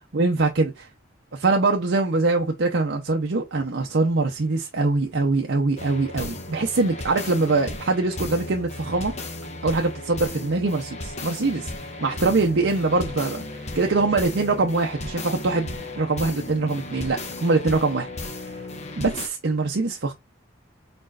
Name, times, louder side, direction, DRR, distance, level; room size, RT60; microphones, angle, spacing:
voice 1, 0.1-0.9 1.3-9.1 9.6-18.1 19.0-20.1, right 3 dB, 65° right, 0.7 m, -23 dB
sound 1, 5.8-19.3, left 2 dB, 35° left, 1.0 m, -35 dB
4.3 x 4.2 x 2.4 m
head